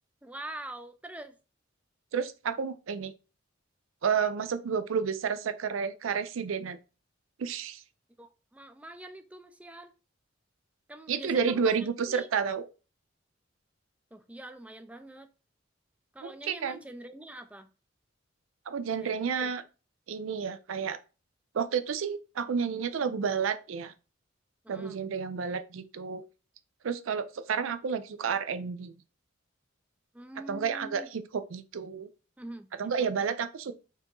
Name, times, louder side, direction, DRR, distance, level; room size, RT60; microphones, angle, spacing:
voice 1, 0.2-1.4 8.2-9.9 10.9-12.3 14.1-15.3 16.1-17.7 19.0-19.5 24.6-25.0 30.1-31.1 32.4-33.1, right 1 dB, 5° right, 0.4 m, -45 dB
voice 2, 2.1-3.1 4.0-6.8 7.4-7.8 11.1-12.6 16.2-16.8 18.7-19.6 20.1-21.0 21.5-23.9 24.7-26.2 26.8-29.0 30.5-32.1 32.8-33.7, right 6 dB, 80° right, 0.5 m, -31 dB
4.5 x 2.9 x 3.7 m
head